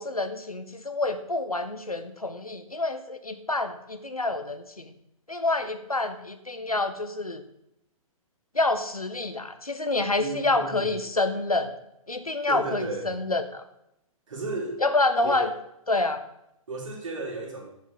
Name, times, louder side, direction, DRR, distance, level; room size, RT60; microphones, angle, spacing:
voice 1, 0.0-4.9 5.3-7.4 8.5-11.7 12.1-13.7 14.8-15.5 15.9-16.2, left 2 dB, 90° left, 9 dB, 1.1 m, -27 dB
voice 2, 10.2-11.0 12.5-13.1 14.3-14.8 15.2-15.5 16.7-17.7, right 2 dB, 60° right, 0 dB, 2.8 m, -34 dB
9.4 x 6.9 x 4.9 m, 0.81 s
figure-of-eight pair, 120°, 18 cm